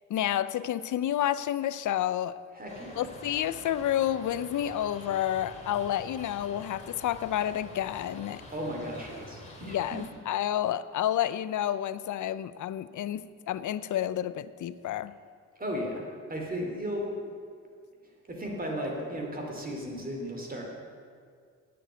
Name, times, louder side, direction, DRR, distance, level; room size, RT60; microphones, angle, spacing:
voice 1, 0.1-2.4 2.9-8.4 9.7-15.1, left 11 dB, 65° left, 15 dB, 0.5 m, -30 dB
voice 2, 2.5-3.1 8.5-9.8 15.6-16.0 16.3-17.1 18.3-20.8, equal, 25° right, 0 dB, 2.6 m, -35 dB
sound 1, 2.7-10.1, left 1 dB, 20° left, 2.4 m, -47 dB
8.7 x 7.7 x 8.0 m, 2.1 s
cardioid pair, 90°, 32 cm